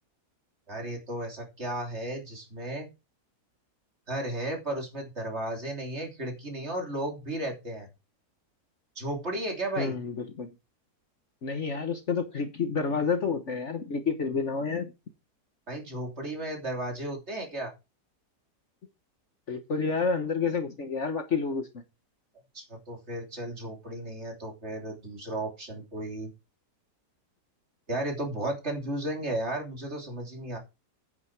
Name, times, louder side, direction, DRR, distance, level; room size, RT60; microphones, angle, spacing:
voice 1, 0.7-2.9 4.1-7.9 8.9-9.9 15.7-17.7 22.5-26.3 27.9-30.6, right 1 dB, 40° right, 1 dB, 3.4 m, -34 dB
voice 2, 9.8-10.5 11.4-14.9 19.5-21.8, left 5 dB, 50° left, 7 dB, 1.4 m, -29 dB
9.4 x 8.7 x 4.6 m, 0.26 s
omnidirectional pair, 1.7 m